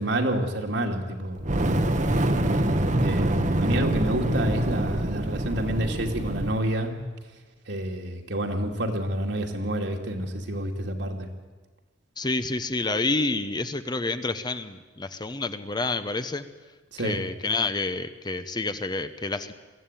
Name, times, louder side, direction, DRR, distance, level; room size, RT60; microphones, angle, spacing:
voice 1, 0.0-1.4 3.0-6.9 7.7-11.3 16.9-17.2, right 1 dB, 70° right, 2 dB, 2.6 m, -28 dB
Fire, 1.4-6.7, right 1 dB, 40° right, 1.3 m, -25 dB
voice 2, 12.2-16.5 17.0-19.5, left 3 dB, 25° left, 10 dB, 0.9 m, -28 dB
22.5 x 14.5 x 9.1 m, 1.3 s
head